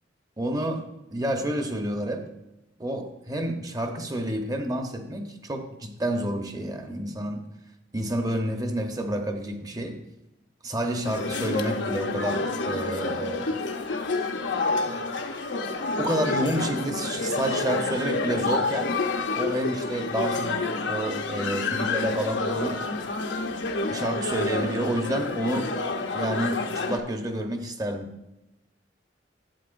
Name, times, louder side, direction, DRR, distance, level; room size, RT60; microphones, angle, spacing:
voice 1, 0.4-2.3 2.8-7.5 7.9-10.0 10.6-13.6 16.0-19.0 19.3-22.8 23.9-25.7 26.1-28.1, right 1 dB, 20° right, 5 dB, 0.9 m, -29 dB
sound 1, 11.0-27.0, left 3 dB, 80° left, 0.8 m, -28 dB
11.5 x 8.2 x 2.6 m, 0.94 s
head